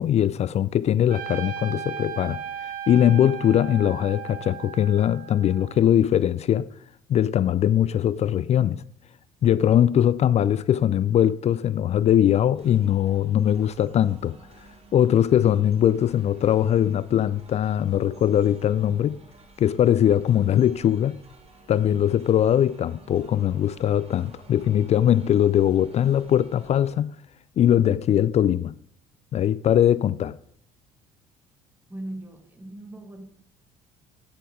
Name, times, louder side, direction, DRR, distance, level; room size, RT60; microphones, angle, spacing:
voice 1, 0.0-6.7 7.1-8.8 9.4-14.4 14.9-19.2 19.6-21.2 21.7-27.1 27.6-28.7 29.3-30.4, left 10 dB, 40° left, 0.4 m, -21 dB
Trumpet, 1.1-5.8, right 8 dB, 55° right, 1.3 m, -36 dB
sound 1, 12.5-27.0, right 3 dB, 35° right, 2.2 m, -52 dB
voice 2, 31.9-33.3, right 1 dB, 10° right, 2.0 m, -38 dB
9.2 x 7.4 x 4.9 m
hypercardioid pair, 60°, 17 cm